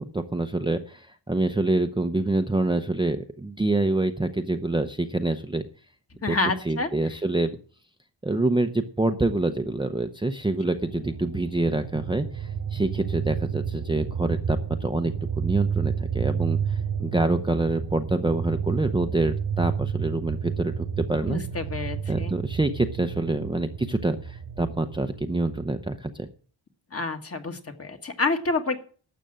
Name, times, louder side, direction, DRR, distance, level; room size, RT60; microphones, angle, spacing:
voice 1, 0.0-5.6 6.3-6.4 6.6-7.5 8.2-21.4 22.1-26.3, right 2 dB, 10° right, 8 dB, 0.6 m, -26 dB
voice 2, 6.2-6.9 21.2-22.3 26.9-28.8, left 3 dB, 35° left, 6 dB, 1.6 m, -28 dB
sound 1, 10.5-25.9, right 7 dB, 45° right, 1.2 m, -31 dB
12.5 x 7.7 x 7.6 m, 0.42 s
wide cardioid pair, 160°, 43 cm